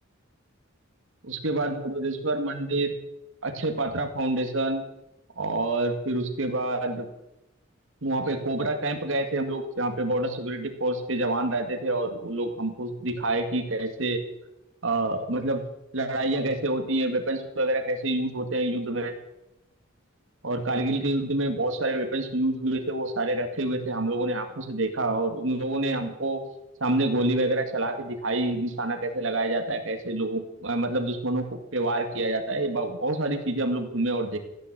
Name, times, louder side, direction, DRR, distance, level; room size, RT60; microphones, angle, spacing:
voice 1, 1.2-3.0 3.4-4.8 5.4-7.1 8.0-14.2 14.8-15.6 15.9-19.1 20.4-26.4 26.8-34.4, right 2 dB, 70° right, 6 dB, 2.2 m, -27 dB
15.5 x 9.6 x 8.1 m, 0.91 s
head